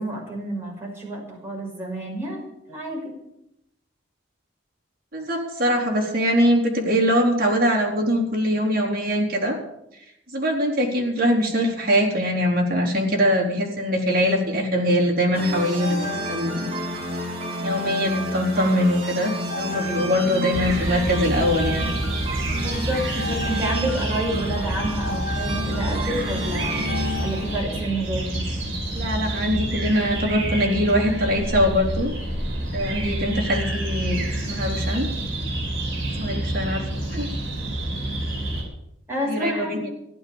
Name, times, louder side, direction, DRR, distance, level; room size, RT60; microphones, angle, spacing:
voice 1, 0.0-3.2 22.6-26.9 27.2-28.4 39.1-39.9, right 1 dB, 10° right, -3 dB, 5.4 m, -29 dB
voice 2, 5.1-9.6 10.3-16.0 16.3-16.7 17.6-21.9 28.9-32.1 32.7-35.1 36.2-37.3 39.3-39.9, equal, 50° right, 0 dB, 3.7 m, -22 dB
sound 1, 15.3-27.6, equal, 35° right, 3.9 m, -30 dB
sound 2, 20.5-38.6, right 1 dB, 70° right, 5.5 m, -28 dB
15.0 x 11.5 x 7.1 m, 0.83 s
head